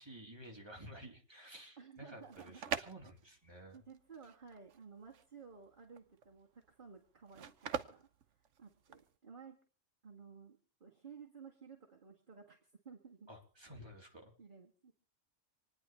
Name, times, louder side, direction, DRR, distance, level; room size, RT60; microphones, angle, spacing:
voice 1, 0.0-3.8 13.3-14.4, right 1 dB, 20° right, 0 dB, 3.5 m, -53 dB
voice 2, 1.8-2.6 3.7-8.1 8.6-9.6 10.0-13.3 14.4-14.9, right 6 dB, 40° right, 0 dB, 2.0 m, -55 dB
sound 1, 2.1-9.1, right 7 dB, 70° right, 1.2 m, -44 dB
27.0 x 10.0 x 4.5 m, 0.39 s
omnidirectional pair, 1.3 m